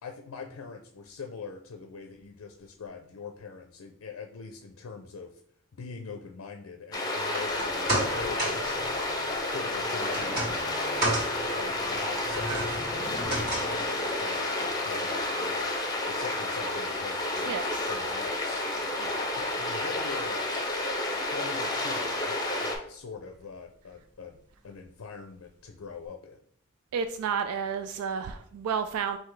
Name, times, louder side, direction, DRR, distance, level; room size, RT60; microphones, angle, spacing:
voice 1, 0.0-5.4 5.7-8.7 9.5-19.0 19.2-20.4 21.2-24.4 24.6-26.4, left 5 dB, 75° left, 4 dB, 0.5 m, -43 dB
sound 1, 6.9-22.8, left 2 dB, 20° left, 0.7 m, -31 dB
sound 2, 7.2-19.6 19.9-20.0, right 1 dB, 45° right, 1.9 m, -36 dB
sound 3, 12.3-16.0, equal, 10° right, 1.4 m, -48 dB
voice 2, 26.9-29.2, right 6 dB, 90° right, 8 dB, 0.3 m, -31 dB
5.7 x 2.7 x 3.2 m, 0.63 s
head